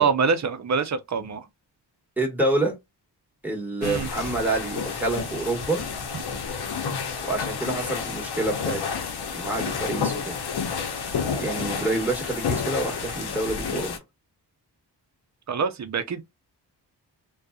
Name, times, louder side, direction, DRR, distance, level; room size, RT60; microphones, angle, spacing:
voice 1, 0.0-1.4 3.8-4.1 15.5-16.2, right 5 dB, 40° right, 0.6 m, -25 dB
voice 2, 2.2-2.8 3.4-5.8 7.2-8.8 9.3-10.3 11.4-14.0, right 2 dB, 5° right, 1.3 m, -27 dB
sound 1, 3.8-14.0, left 6 dB, 65° left, 0.8 m, -30 dB
2.5 x 2.3 x 2.2 m
cardioid pair, 75°, 43 cm